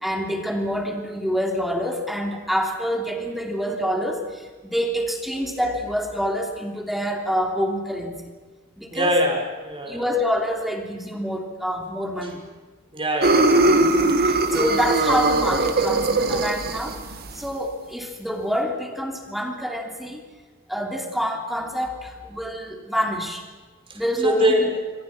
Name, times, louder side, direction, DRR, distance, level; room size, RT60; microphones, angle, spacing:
voice 1, 0.0-8.2 8.8-9.1 9.9-12.4 13.7-17.0 17.3-20.2 20.7-23.4 23.9-24.7, equal, ahead, 2 dB, 3.2 m, -27 dB
voice 2, 8.9-10.0 12.9-13.6 23.9-24.7, equal, 25° right, 2 dB, 5.6 m, -23 dB
sound 1, 13.2-17.5, right 2 dB, 45° right, 1.9 m, -20 dB
27.5 x 24.0 x 6.0 m, 1.4 s
head